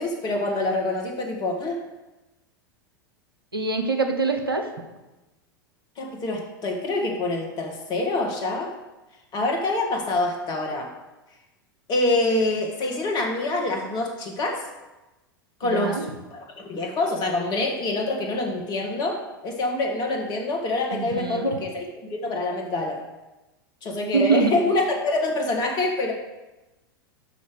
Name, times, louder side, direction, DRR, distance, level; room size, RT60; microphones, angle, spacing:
voice 1, 0.0-1.8 6.0-8.7 9.3-10.9 11.9-14.7 15.6-16.1 16.3-23.0 23.8-26.1, left 2 dB, 35° left, 2 dB, 1.7 m, -26 dB
voice 2, 3.5-4.7 15.7-16.0 20.9-21.5 24.1-24.5, right 4 dB, 85° right, 5 dB, 0.9 m, -24 dB
6.1 x 5.8 x 6.3 m, 1.1 s
figure-of-eight pair, 90°, 12 cm